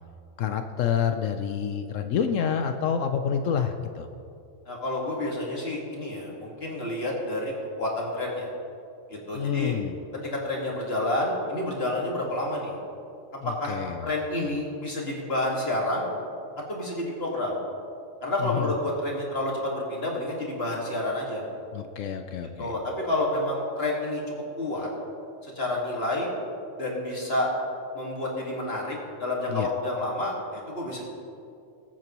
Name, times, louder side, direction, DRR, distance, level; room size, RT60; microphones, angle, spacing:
voice 1, 0.4-4.1 9.3-10.0 13.4-14.1 18.4-18.7 21.7-22.7 29.5-29.7, left 7 dB, 75° left, 7 dB, 1.0 m, -28 dB
voice 2, 4.7-7.5 7.8-8.5 9.1-9.8 10.2-12.8 13.6-16.1 16.7-17.6 18.2-21.4 22.6-24.2 24.6-24.9 25.4-26.3 26.8-27.5 27.9-31.1, left 1 dB, 50° left, -2 dB, 2.2 m, -29 dB
20.5 x 8.9 x 3.0 m, 2.5 s
omnidirectional pair, 1.4 m